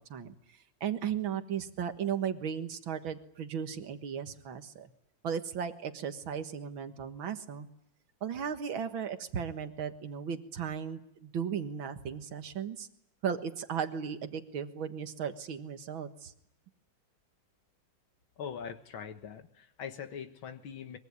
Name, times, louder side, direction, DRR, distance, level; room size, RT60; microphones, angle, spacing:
voice 1, 0.8-4.9 5.2-7.7 8.2-12.9 13.2-16.3, right 7 dB, 80° right, 8 dB, 2.4 m, -36 dB
voice 2, 18.4-21.0, left 7 dB, 80° left, 8 dB, 2.3 m, -42 dB
23.5 x 22.5 x 9.6 m, 0.73 s
omnidirectional pair, 2.2 m